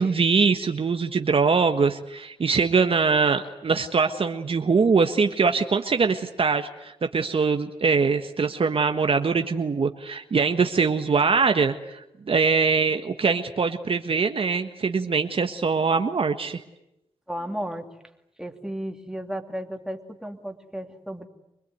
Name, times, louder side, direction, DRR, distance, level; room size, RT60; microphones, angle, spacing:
voice 1, 0.0-12.0 12.3-16.6, right 5 dB, 55° right, 7 dB, 1.5 m, -22 dB
voice 2, 17.3-17.9 18.4-21.3, equal, 5° right, 4 dB, 2.8 m, -34 dB
25.5 x 20.5 x 9.5 m, 0.87 s
cardioid pair, 65°, 12 cm